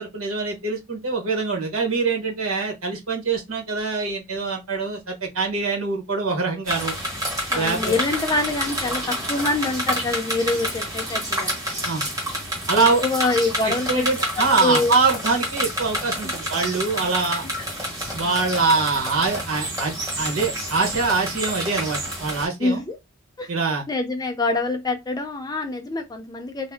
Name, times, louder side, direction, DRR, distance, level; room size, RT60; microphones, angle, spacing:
voice 1, 0.0-6.9 7.5-7.9 11.8-12.0 12.7-13.0 13.6-17.4 18.1-22.8 23.5-23.8, right 4 dB, 80° right, 1.1 m, -24 dB
sound 1, 6.6-22.5, equal, 15° right, 1.2 m, -28 dB
voice 2, 7.5-11.6 12.8-14.0 14.6-14.9 16.2-16.3 17.0-17.1 18.0-18.3 22.6-23.0 23.4-23.5 23.9-26.7, left 2 dB, 20° left, 0.5 m, -25 dB
2.7 x 2.0 x 3.4 m
head